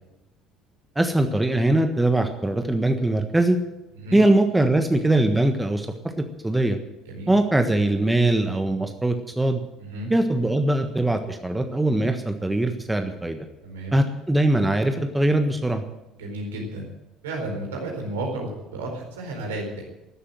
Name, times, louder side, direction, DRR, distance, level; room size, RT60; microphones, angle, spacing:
voice 1, 0.9-3.6 4.1-6.8 7.3-9.6 10.1-13.4 13.9-15.8, right 1 dB, 10° right, 7 dB, 1.4 m, -21 dB
voice 2, 9.8-10.1 13.6-14.0 16.1-16.9 17.2-19.8, right 2 dB, 70° right, 1 dB, 4.4 m, -32 dB
14.0 x 12.0 x 7.8 m, 0.96 s
figure-of-eight pair, 55°, 0 cm